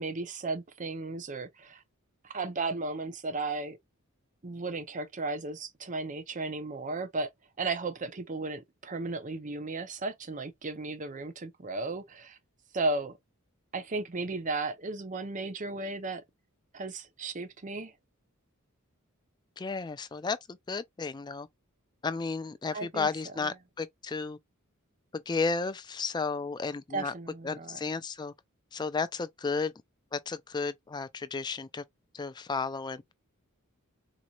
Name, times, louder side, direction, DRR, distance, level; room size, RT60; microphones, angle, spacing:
voice 1, 0.0-1.8 2.2-3.8 4.4-7.3 7.6-12.4 12.7-13.2 13.7-16.2 16.7-17.9 22.7-23.1 26.9-27.8, right 3 dB, 35° right, 0.7 m, -35 dB
voice 2, 19.6-21.5 22.0-24.4 25.1-27.1 27.4-28.3 28.7-29.7 30.1-31.8 32.1-33.1, left 4 dB, 20° left, 0.3 m, -33 dB
4.0 x 3.0 x 2.3 m
head